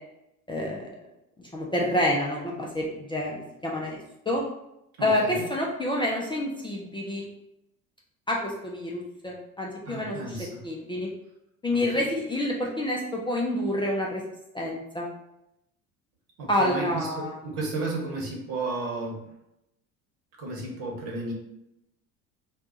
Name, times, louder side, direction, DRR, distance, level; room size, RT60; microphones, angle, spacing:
voice 1, 0.5-0.9 1.4-4.0 4.3-4.4 5.0-7.2 8.3-10.4 10.6-11.1 11.6-14.2 14.5-15.1 16.5-17.4, left 1 dB, 10° left, -2 dB, 0.4 m, -28 dB
voice 2, 5.0-5.4 9.9-10.6 11.7-12.1 16.4-19.2 20.4-21.3, right 2 dB, 60° right, -1 dB, 1.3 m, -33 dB
2.6 x 2.3 x 3.9 m, 0.83 s
hypercardioid pair, 75°, 42 cm